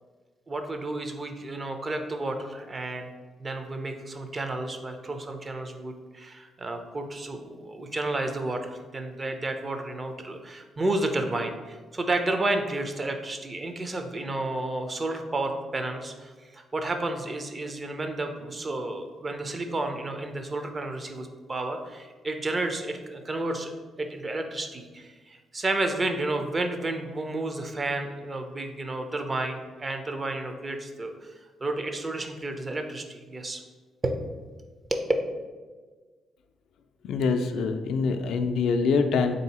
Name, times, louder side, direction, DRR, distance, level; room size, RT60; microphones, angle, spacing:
voice 1, 0.5-3.1 3.4-23.7 24.0-31.3 31.6-33.6 34.0-34.2 34.9-35.0, right 2 dB, 30° right, 5 dB, 0.5 m, -31 dB
voice 2, 37.0-39.3, left 4 dB, 75° left, 6 dB, 0.3 m, -25 dB
3.6 x 2.7 x 4.1 m, 1.4 s
cardioid pair, 90°, 0 cm